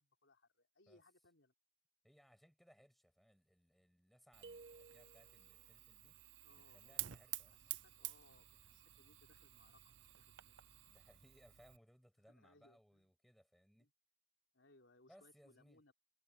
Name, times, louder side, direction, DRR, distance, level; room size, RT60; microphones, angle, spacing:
voice 1, 0.0-1.5 6.4-7.2 7.4-10.6 12.2-13.1 13.7-13.9 14.5-15.9, left 2 dB, 85° left, 4.2 m, -70 dB
voice 2, 2.0-6.2 6.5-7.8 10.9-13.9 15.1-15.8, equal, ahead, 6.7 m, -68 dB
Fire, 4.3-11.8, right 16 dB, 85° right, 0.6 m, -51 dB
sound 1, 4.4-5.5, right 3 dB, 60° right, 1.5 m, -57 dB
head